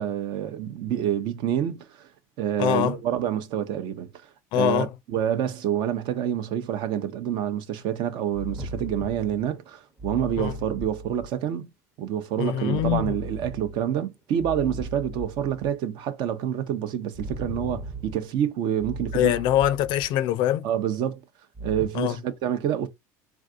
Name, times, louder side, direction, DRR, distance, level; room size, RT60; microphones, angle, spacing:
voice 1, 0.0-2.1 2.4-4.1 4.5-11.7 12.0-19.3 20.6-21.2 21.6-22.9, right 10 dB, 60° right, 0.6 m, -27 dB
voice 2, 2.6-3.0 4.5-4.9 10.4-10.5 12.4-13.2 19.1-20.6 21.9-22.1, left 12 dB, 60° left, 0.4 m, -23 dB
sound 1, 8.3-9.6 10.0-11.3 12.7-14.0 14.4-15.7 17.1-18.4 18.8-20.1 21.6-21.9, right 1 dB, 25° right, 0.8 m, -37 dB
3.5 x 2.5 x 2.4 m
supercardioid pair, 100°, 9 cm